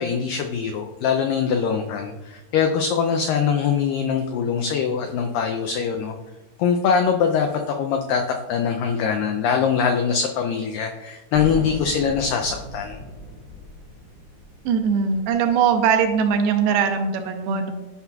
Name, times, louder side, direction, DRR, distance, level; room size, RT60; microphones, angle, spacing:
voice 1, 0.0-6.1 6.6-13.0, left 6 dB, 90° left, 3 dB, 1.9 m, -23 dB
sound 1, 11.3-16.6, equal, 60° left, 1.2 m, -37 dB
voice 2, 14.7-17.7, right 6 dB, 80° right, 5 dB, 2.6 m, -20 dB
11.0 x 6.0 x 2.3 m, 1.1 s
omnidirectional pair, 4.5 m